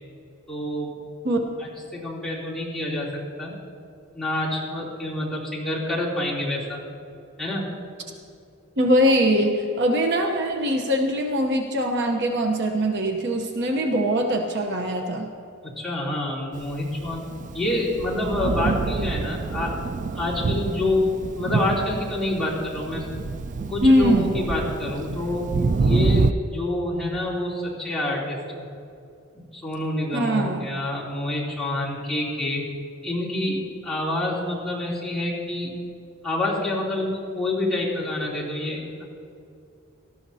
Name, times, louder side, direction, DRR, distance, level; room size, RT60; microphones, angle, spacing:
voice 1, 0.5-0.9 1.6-3.5 4.1-6.8 7.4-7.7 15.6-17.3 17.5-19.8 20.1-23.0 23.7-25.5 25.8-28.7 29.5-32.6 33.0-35.7 36.2-39.1, left 1 dB, ahead, -8 dB, 3.1 m, -27 dB
voice 2, 8.8-15.3 23.8-24.3 30.1-30.7, equal, 55° right, 3 dB, 0.9 m, -22 dB
Thunder, 16.8-26.3, right 4 dB, 35° right, 0.3 m, -27 dB
19.0 x 13.5 x 2.8 m, 2.5 s
head